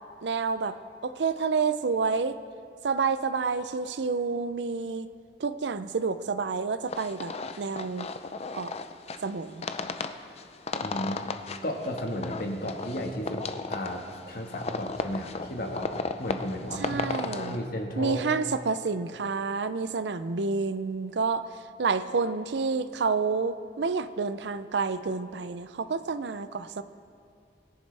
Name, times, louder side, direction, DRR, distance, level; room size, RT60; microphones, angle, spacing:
voice 1, 0.2-2.4 2.8-5.1 5.4-8.1 8.5-8.7 9.2-9.6 16.8-17.6 18.0-21.5 21.8-26.8, right 4 dB, 80° right, 13 dB, 0.5 m, -29 dB
sound 1, 6.9-17.6, left 4 dB, 35° left, 0.5 m, -35 dB
voice 2, 10.8-11.3 11.6-13.4 13.7-15.9 16.2-18.2, equal, 55° left, 2 dB, 1.6 m, -34 dB
21.5 x 10.5 x 3.4 m, 2.4 s
head